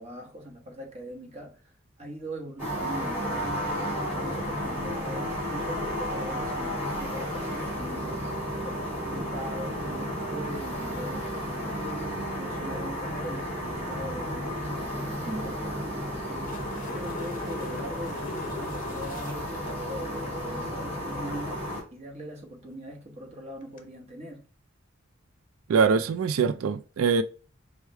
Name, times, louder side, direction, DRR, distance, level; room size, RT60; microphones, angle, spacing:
voice 1, 0.0-1.6 2.0-11.8 12.4-24.4, right 1 dB, 30° right, 1.1 m, -41 dB
sound 1, 2.6-21.8, equal, 10° right, 2.1 m, -33 dB
sound 2, 16.4-19.8 23.6-23.8, left 3 dB, 40° left, 0.6 m, -41 dB
voice 2, 25.7-27.2, right 5 dB, 90° right, 0.4 m, -23 dB
4.7 x 2.2 x 4.6 m
head